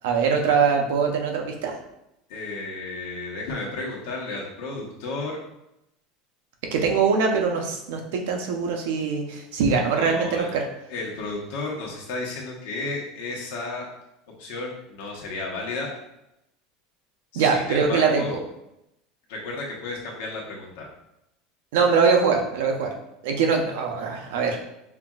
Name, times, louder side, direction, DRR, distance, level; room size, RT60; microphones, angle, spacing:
voice 1, 0.0-1.7 6.7-10.6 17.3-18.4 21.7-22.9 23.2-24.6, right 5 dB, 80° right, 3 dB, 0.7 m, -22 dB
voice 2, 2.3-5.4 10.0-10.5 10.9-13.9 14.4-15.9 17.3-18.4 19.3-20.9, left 3 dB, 75° left, -2 dB, 1.2 m, -33 dB
5.8 x 2.6 x 2.4 m, 0.85 s
supercardioid pair, 160°, 0 cm